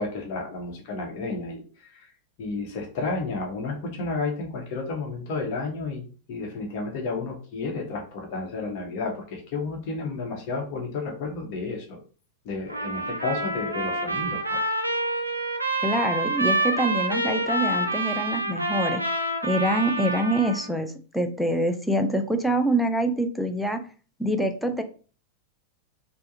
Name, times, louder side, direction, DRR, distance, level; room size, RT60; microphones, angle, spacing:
voice 1, 0.0-2.1 2.4-12.0 12.4-14.7, left 3 dB, 45° left, 1 dB, 0.9 m, -32 dB
Trumpet, 12.7-20.7, right 2 dB, 85° right, 0.4 m, -27 dB
voice 2, 15.8-19.0 19.4-23.8 24.2-24.8, right 1 dB, ahead, 5 dB, 0.4 m, -25 dB
3.4 x 2.1 x 2.7 m, 0.37 s
figure-of-eight pair, 90°, 0 cm